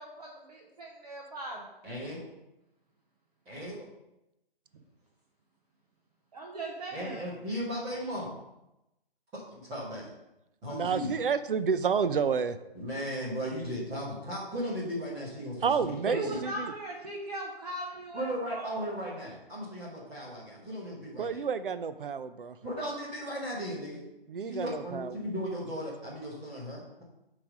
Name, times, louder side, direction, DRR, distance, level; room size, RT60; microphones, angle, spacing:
voice 1, 0.0-1.7 4.7-4.8 6.3-7.2 16.1-18.9, right 2 dB, 40° right, -2 dB, 1.0 m, -39 dB
voice 2, 1.8-2.2 3.5-3.8 6.9-8.3 9.5-10.1 10.6-11.2 12.7-16.4 18.1-21.4 22.6-24.0 24.5-27.0, equal, 10° right, -7 dB, 1.0 m, -36 dB
voice 3, 10.7-12.6 15.6-16.7 21.2-22.6 24.3-25.1, right 6 dB, 60° right, 12 dB, 0.5 m, -30 dB
6.9 x 3.3 x 5.1 m, 0.91 s
hypercardioid pair, 165°, 30 cm